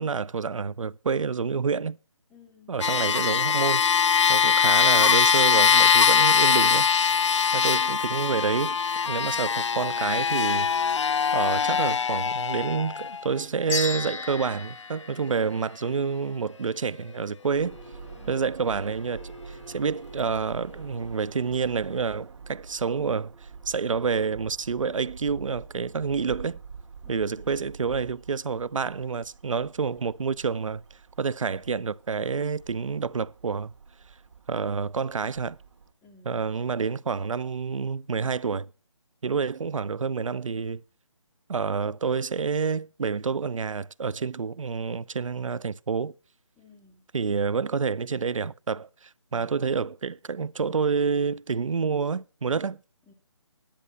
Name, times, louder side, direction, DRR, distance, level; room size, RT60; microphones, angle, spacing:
voice 1, 0.0-2.0 2.7-3.9 4.3-6.9 7.5-8.8 9.0-10.7 11.3-17.8 18.3-26.6 27.1-30.8 31.2-33.7 34.5-35.6 36.2-38.7 39.2-40.8 41.5-46.1 47.1-52.8, right 5 dB, 90° right, 0.5 m, -28 dB
voice 2, 2.3-2.8 18.1-18.6 27.0-27.6 36.0-36.5 46.6-47.0 53.1-53.2, left 4 dB, ahead, 0.4 m, -55 dB
sound 1, 2.8-13.2 14.0-14.1, left 6 dB, 65° left, 0.4 m, -22 dB
sound 2, 13.7-16.2, left 4 dB, 85° left, 1.6 m, -34 dB
sound 3, 17.5-35.9, right 5 dB, 65° right, 1.5 m, -46 dB
10.0 x 8.7 x 5.3 m
figure-of-eight pair, 165°, 16 cm